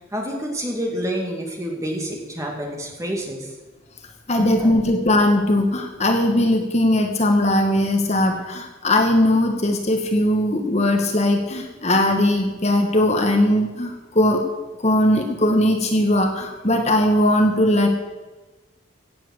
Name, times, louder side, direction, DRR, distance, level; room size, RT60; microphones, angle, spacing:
voice 1, 0.1-3.5 4.4-4.7, equal, 15° right, 1 dB, 2.4 m, -28 dB
voice 2, 4.3-14.4 14.8-17.9, left 1 dB, 35° left, 4 dB, 1.3 m, -19 dB
16.5 x 7.6 x 7.8 m, 1.2 s
head